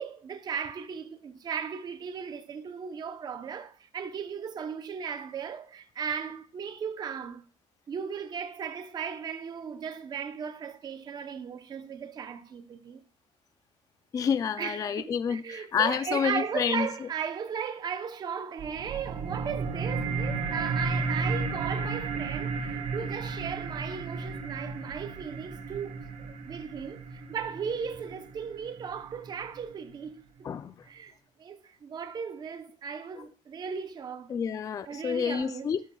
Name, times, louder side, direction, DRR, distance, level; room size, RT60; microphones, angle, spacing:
voice 1, 0.0-7.4 7.9-13.0 14.6-30.2 30.8-31.1 31.4-34.4 34.9-35.7, right 7 dB, 30° right, 0.8 m, -36 dB
voice 2, 14.1-16.9 30.4-30.7 34.3-35.8, left 7 dB, 25° left, 0.4 m, -29 dB
sound 1, 18.6-29.6, right 4 dB, 70° right, 2.1 m, -33 dB
13.5 x 11.0 x 2.3 m
cardioid pair, 170°, 13 cm